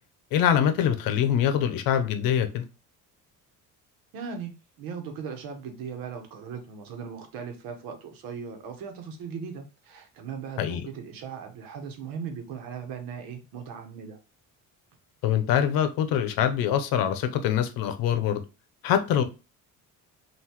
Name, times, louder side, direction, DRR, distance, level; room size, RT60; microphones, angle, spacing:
voice 1, 0.3-2.6 10.6-10.9 15.2-18.4 18.8-19.2, left 9 dB, 90° left, 0.8 m, -24 dB
voice 2, 4.1-14.2, right 6 dB, 80° right, 1.2 m, -38 dB
5.7 x 2.6 x 3.0 m
cardioid pair, 180°, 34 cm